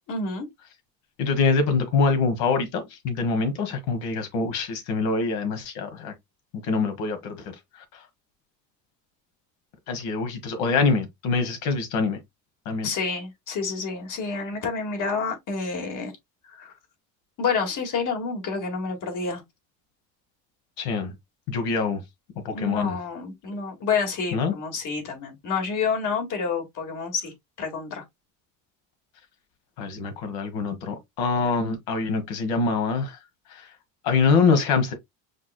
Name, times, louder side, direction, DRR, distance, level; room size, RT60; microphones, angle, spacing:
voice 1, 0.1-0.5 12.8-16.1 16.4-16.7 17.4-19.4 22.5-27.3 27.6-28.0, left 5 dB, 55° left, 1.9 m, -29 dB
voice 2, 1.2-6.1 6.5-7.5 7.9-8.0 9.9-12.2 12.6-12.9 20.8-21.1 21.5-22.0 22.4-23.0 24.3-24.5 29.8-33.2 33.5-33.7 34.0-34.9, left 4 dB, 80° left, 1.4 m, -24 dB
5.1 x 3.2 x 2.2 m
cardioid pair, 105°, 36 cm